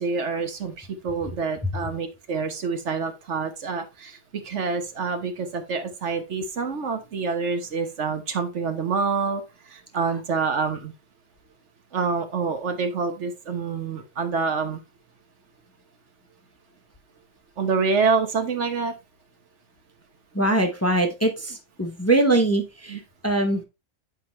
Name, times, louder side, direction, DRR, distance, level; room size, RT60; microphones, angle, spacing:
voice 1, 0.0-9.4 9.7-10.9 11.9-14.8 17.6-18.9 22.9-23.0, right 5 dB, 70° right, 7 dB, 1.3 m, -27 dB
voice 2, 20.3-23.6, right 2 dB, 15° left, 4 dB, 0.8 m, -22 dB
8.0 x 4.9 x 3.1 m, 0.25 s
omnidirectional pair, 1.3 m